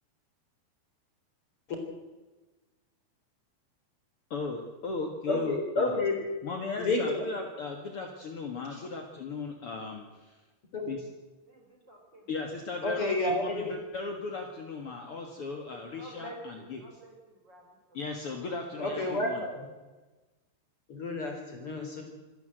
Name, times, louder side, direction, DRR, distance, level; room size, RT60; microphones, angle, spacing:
voice 1, 4.3-6.0 6.4-10.4 10.9-11.0 12.3-16.8 17.9-19.4, left 4 dB, 60° left, 3 dB, 1.5 m, -37 dB
voice 2, 5.3-6.1 6.8-7.2 8.7-8.8 10.7-10.9 12.8-13.7 18.8-19.7 20.9-22.0, left 2 dB, 30° left, 2 dB, 4.3 m, -30 dB
voice 3, 11.5-12.3 12.6-12.8 16.0-18.0, right 1 dB, 25° right, 1 dB, 4.7 m, -49 dB
27.0 x 13.0 x 7.9 m, 1.2 s
omnidirectional pair, 5.4 m